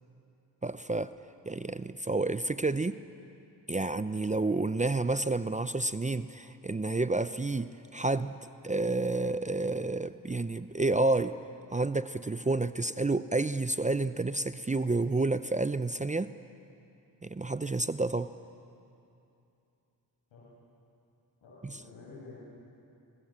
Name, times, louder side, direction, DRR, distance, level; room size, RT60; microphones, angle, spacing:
voice 1, 0.6-1.1 1.5-3.0 3.7-8.3 8.6-11.3 11.7-16.3 17.2-18.3 21.6-21.7, right 2 dB, 15° right, 12 dB, 0.7 m, -30 dB
voice 2, 21.4-22.4, left 3 dB, 85° left, -7 dB, 7.6 m, -49 dB
26.5 x 20.5 x 7.5 m, 2.7 s
supercardioid pair, 55°, 45 cm